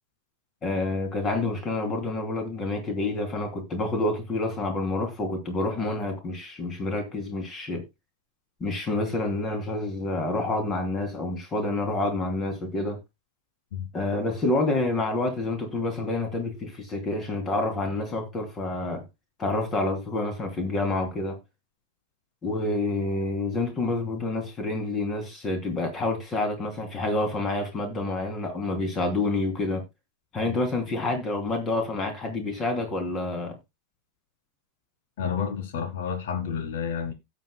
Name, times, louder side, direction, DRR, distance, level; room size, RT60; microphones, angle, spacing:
voice 1, 0.6-7.8 8.6-13.0 13.9-19.0 19.4-21.4 22.4-29.8 30.3-33.6, left 2 dB, 25° left, 3.0 m, -28 dB
voice 2, 35.2-37.1, left 7 dB, 55° left, 1.8 m, -30 dB
16.5 x 7.1 x 2.2 m
figure-of-eight pair, 90°, 0 cm